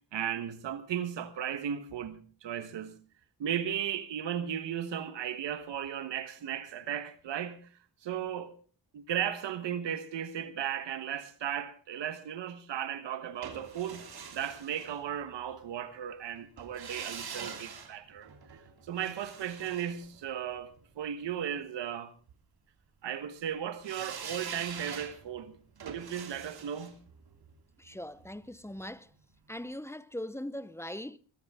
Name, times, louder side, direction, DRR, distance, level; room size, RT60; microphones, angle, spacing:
voice 1, 0.1-3.0 3.4-7.6 8.0-8.5 8.9-14.1 14.3-18.6 18.8-22.1 23.0-25.6 25.8-27.0, right 9 dB, 85° right, 1.3 m, -36 dB
sound 1, 13.4-15.5 16.6-20.8 23.8-28.8 29.1-29.2, right 6 dB, 60° right, 2.9 m, -45 dB
voice 2, 27.8-29.1 29.5-31.2, left 1 dB, 5° left, 0.8 m, -40 dB
21.0 x 13.5 x 3.6 m
cardioid pair, 60°, 42 cm